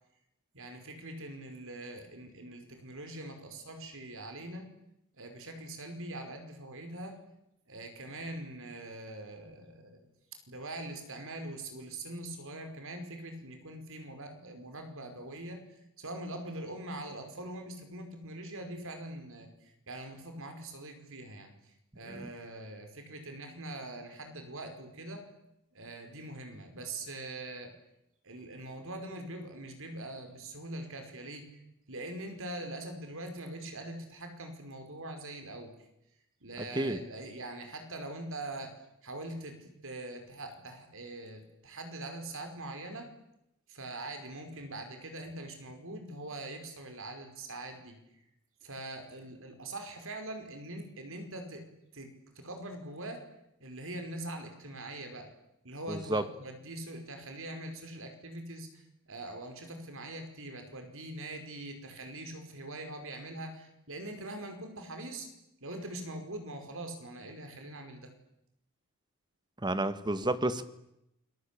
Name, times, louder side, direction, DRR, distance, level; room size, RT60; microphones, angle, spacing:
voice 1, 0.5-4.7 5.1-7.2 7.7-10.0 10.5-15.6 16.0-25.3 25.7-27.7 28.2-31.6 31.9-35.8 36.4-43.1 43.7-48.0 48.6-51.6 51.9-53.3 53.6-55.3 55.6-65.3 65.6-68.1, right 1 dB, 65° right, 6 dB, 5.3 m, -43 dB
voice 2, 55.9-56.2 69.6-70.6, right 1 dB, 20° right, 12 dB, 1.6 m, -30 dB
29.0 x 22.5 x 8.6 m, 0.84 s
head